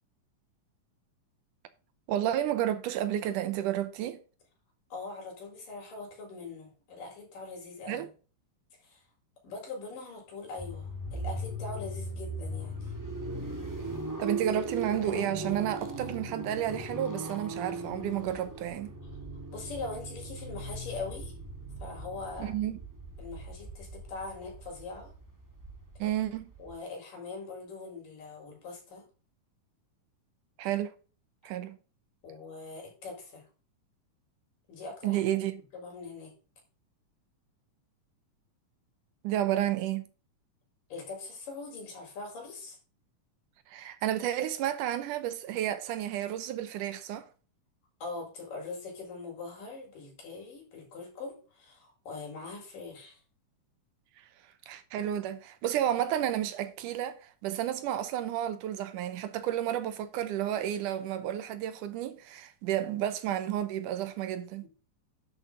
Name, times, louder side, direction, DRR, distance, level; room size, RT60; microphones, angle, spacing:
voice 1, 2.1-4.2 7.9-8.1 14.2-18.9 22.4-22.8 26.0-26.5 30.6-30.9 31.4-31.8 35.0-35.6 39.2-40.1 43.7-47.2 54.7-64.7, right 11 dB, 80° right, 2.3 m, -31 dB
voice 2, 4.9-8.1 8.8-9.0 9.4-12.9 19.5-21.4 21.8-22.5 23.2-25.1 26.6-29.1 32.2-33.4 34.7-35.2 35.7-36.3 40.9-42.8 48.0-53.2 64.6-64.7, left 3 dB, 90° left, 6.0 m, -42 dB
sound 1, 10.6-26.8, right 1 dB, 10° right, 1.0 m, -39 dB
11.0 x 6.7 x 3.8 m
omnidirectional pair, 3.7 m